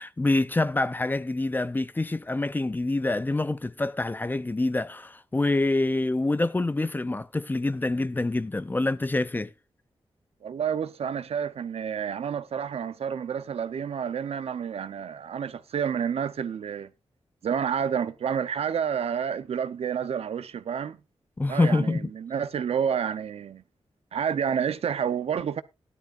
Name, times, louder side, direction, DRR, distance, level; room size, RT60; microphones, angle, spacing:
voice 1, 0.0-9.5 21.4-22.1, left 2 dB, 20° left, 0.5 m, -26 dB
voice 2, 10.4-16.9 17.4-21.0 21.5-23.6 24.1-25.6, right 7 dB, 90° right, 0.7 m, -29 dB
14.5 x 12.0 x 2.5 m
wide cardioid pair, 120°, 10 cm